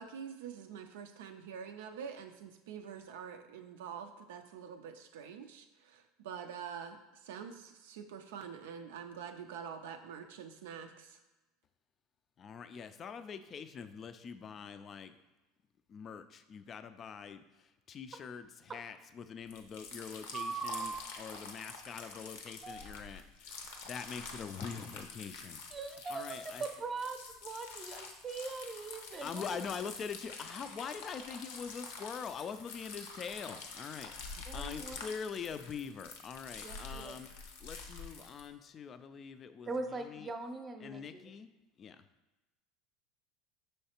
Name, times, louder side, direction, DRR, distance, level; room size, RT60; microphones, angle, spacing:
voice 1, 0.0-11.2, right 7 dB, 80° right, 5 dB, 0.3 m, -46 dB
voice 2, 12.4-15.1 15.9-25.6 26.1-26.6 29.2-37.3 37.6-40.3 40.8-41.5 41.8-42.0, left 6 dB, 40° left, 11 dB, 0.3 m, -44 dB
sound 1, 19.5-38.5, left 4 dB, 80° left, 0.6 m, -47 dB
voice 3, 20.3-21.0 22.6-23.0 25.7-29.6 34.5-35.0 36.6-37.2 39.7-41.0, right 4 dB, 30° right, 6 dB, 0.6 m, -41 dB
5.5 x 3.1 x 2.9 m, 1.1 s
hypercardioid pair, 90°, 0 cm